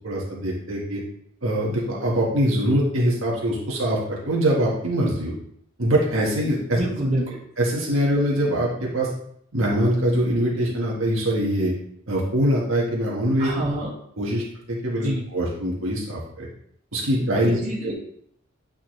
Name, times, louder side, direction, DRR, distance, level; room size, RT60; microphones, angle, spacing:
voice 1, 0.0-1.0 1.4-5.3 5.8-6.8 7.6-9.1 9.5-11.7 12.1-13.6 14.2-16.5 16.9-17.6, right 1 dB, 75° right, -4 dB, 1.5 m, -23 dB
voice 2, 6.7-7.4 13.4-13.9 14.4-14.5 15.0-15.2 17.5-17.9, right 1 dB, 35° right, -5 dB, 2.0 m, -27 dB
8.8 x 4.1 x 3.2 m, 0.66 s
head